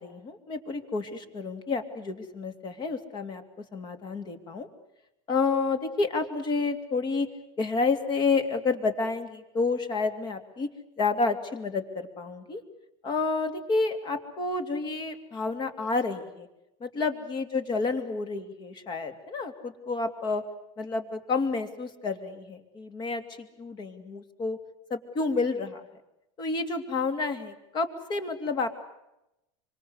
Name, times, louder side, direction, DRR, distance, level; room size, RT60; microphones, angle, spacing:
voice 1, 0.0-3.4 3.7-4.7 5.3-7.3 7.6-10.7 11.0-12.6 13.0-16.5 16.8-20.4 20.8-24.6 24.9-25.8 26.4-28.7, left 4 dB, 30° left, 9 dB, 2.8 m, -30 dB
26.0 x 26.0 x 8.1 m, 0.90 s
supercardioid pair, 155°, 16 cm